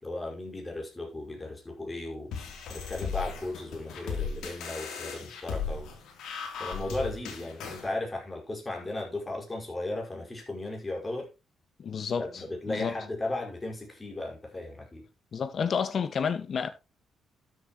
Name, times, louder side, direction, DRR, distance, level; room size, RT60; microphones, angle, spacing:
voice 1, 0.0-2.3 2.7-5.9 6.6-11.3 12.2-15.1, left 2 dB, 20° left, 5.0 m, -36 dB
sound 1, 2.3-7.9, left 5 dB, 80° left, 3.2 m, -36 dB
voice 2, 11.8-13.0 15.3-16.7, left 6 dB, 50° left, 1.5 m, -30 dB
12.5 x 7.8 x 3.0 m
cardioid pair, 90°, 0 cm